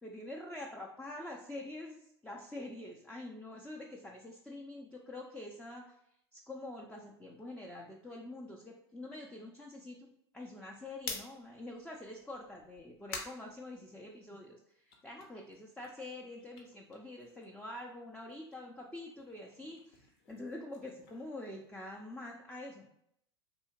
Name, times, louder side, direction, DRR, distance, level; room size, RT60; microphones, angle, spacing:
voice 1, 0.0-6.0 6.3-22.9, left 1 dB, 5° left, -1 dB, 0.4 m, -46 dB
sound 1, 10.9-14.4 14.8-17.7 18.0-22.1, left 4 dB, 60° left, 0.8 m, -49 dB
3.5 x 2.7 x 2.8 m, 0.73 s
hypercardioid pair, 100°, 15 cm